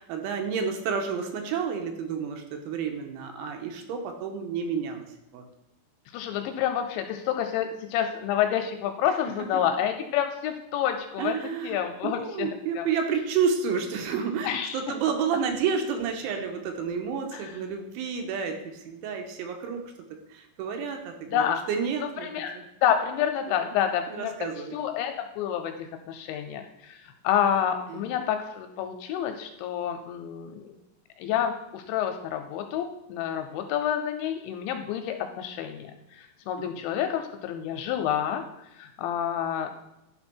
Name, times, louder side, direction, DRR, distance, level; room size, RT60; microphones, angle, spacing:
voice 1, 0.0-5.0 5.3-5.4 9.5-9.6 11.2-19.8 20.3-22.6 23.5-23.8 24.1-24.8 27.9-28.1, right 6 dB, 85° right, 4 dB, 3.2 m, -30 dB
voice 2, 6.1-11.4 11.6-12.5 12.8-12.9 14.4-14.8 17.3-17.5 21.2-21.6 22.0-22.5 22.8-24.4 24.7-30.8 31.2-38.4 38.7-39.7, left 9 dB, 85° left, 6 dB, 2.7 m, -28 dB
11.5 x 4.4 x 4.4 m, 0.91 s
omnidirectional pair, 5.5 m